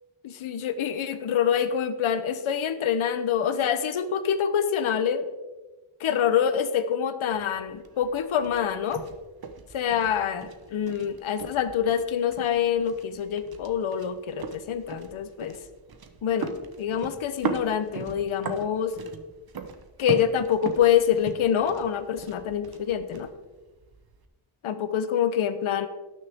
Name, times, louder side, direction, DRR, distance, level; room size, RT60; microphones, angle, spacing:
voice 1, 0.2-5.3 6.0-9.0 9.7-15.6 16.2-18.9 20.0-23.3 24.6-25.9, left 8 dB, 75° left, 10 dB, 1.0 m, -26 dB
sound 1, 7.3-24.3, right 6 dB, 50° right, 1.1 m, -40 dB
18.0 x 6.6 x 3.6 m, 1.2 s
wide cardioid pair, 140°, 49 cm